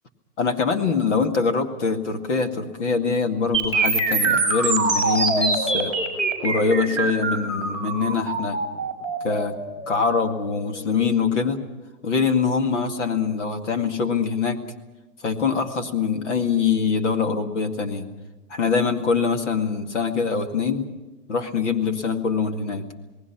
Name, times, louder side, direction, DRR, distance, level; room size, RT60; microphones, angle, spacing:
voice 1, 0.4-6.0 6.4-8.6 9.2-9.6 9.9-11.6 12.0-14.6 15.2-18.1 18.5-20.8 21.3-22.9, left 5 dB, 50° left, 6 dB, 2.2 m, -23 dB
sound 1, 3.5-11.5, right 3 dB, 10° left, 5.6 m, -24 dB
28.5 x 19.0 x 5.9 m, 1.1 s
hypercardioid pair, 180°, 46 cm